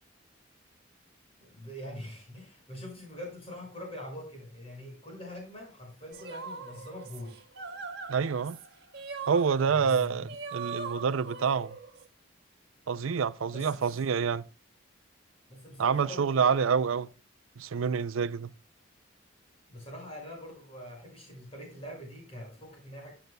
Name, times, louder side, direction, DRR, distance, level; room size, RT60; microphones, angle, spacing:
voice 1, 1.4-7.3 9.6-10.2 13.5-13.9 15.5-16.7 19.7-23.1, equal, 30° left, 5.9 m, -43 dB
sound 1, 6.1-12.0, right 4 dB, 55° right, 1.5 m, -41 dB
voice 2, 8.1-8.6 9.3-11.8 12.9-14.4 15.8-17.1 17.6-18.5, right 6 dB, 80° right, 0.4 m, -27 dB
14.5 x 8.0 x 2.2 m
head